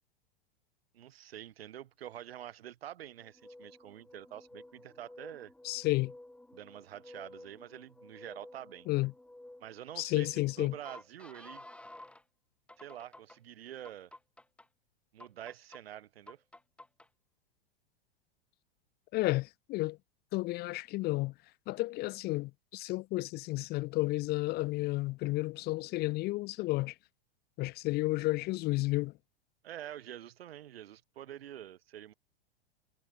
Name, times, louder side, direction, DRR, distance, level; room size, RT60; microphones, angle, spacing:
voice 1, 0.9-5.5 6.5-8.9 9.6-11.6 12.8-14.1 15.1-16.4 29.6-32.1, right 11 dB, 75° right, 5.0 m, -47 dB
sound 1, 3.2-12.2 12.7-13.4 13.8-14.7 15.2-15.8 16.3-17.1, left 1 dB, 5° left, 2.2 m, -53 dB
voice 2, 5.6-6.1 8.9-9.1 10.0-10.7 19.1-20.0 20.3-21.3 21.7-26.9 27.6-29.1, left 20 dB, 35° left, 0.5 m, -32 dB
hypercardioid pair, 110°, 30 cm